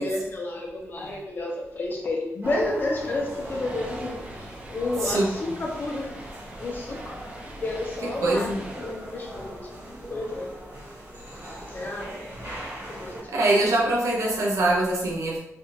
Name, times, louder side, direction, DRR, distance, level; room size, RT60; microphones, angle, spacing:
voice 1, 0.0-6.1 6.6-9.7 10.1-10.5 11.7-12.2 12.9-13.3, left 2 dB, 40° left, -1 dB, 0.7 m, -31 dB
sound 1, 2.4-13.2, equal, 45° right, 1.2 m, -40 dB
sound 2, 3.0-10.4, right 1 dB, 25° right, 0.6 m, -44 dB
voice 2, 5.0-5.6 8.0-8.6 13.3-15.4, right 2 dB, 80° right, -2 dB, 0.8 m, -24 dB
3.4 x 2.4 x 2.8 m, 0.81 s
wide cardioid pair, 135°, 5 cm